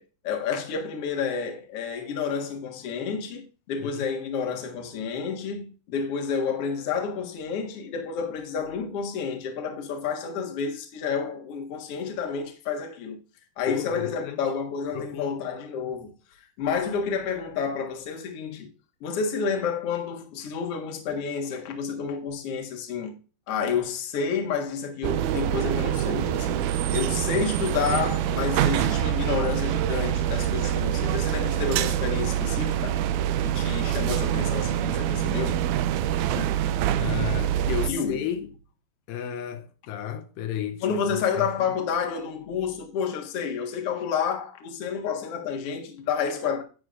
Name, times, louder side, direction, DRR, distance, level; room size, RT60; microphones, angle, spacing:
voice 1, 0.0-13.2 13.6-16.1 16.6-18.7 19.0-23.2 23.5-26.7 26.9-33.0 33.4-35.7 36.4-36.6 37.9-38.2 40.8-46.6, left 6 dB, 50° left, 2.2 m, -30 dB
voice 2, 13.7-14.4 14.9-15.3 36.9-38.5 39.1-41.0 41.4-41.7, left 9 dB, 85° left, 2.5 m, -33 dB
sound 1, 25.0-37.9, right 11 dB, 80° right, 1.8 m, -25 dB
11.0 x 8.3 x 2.5 m
omnidirectional pair, 3.9 m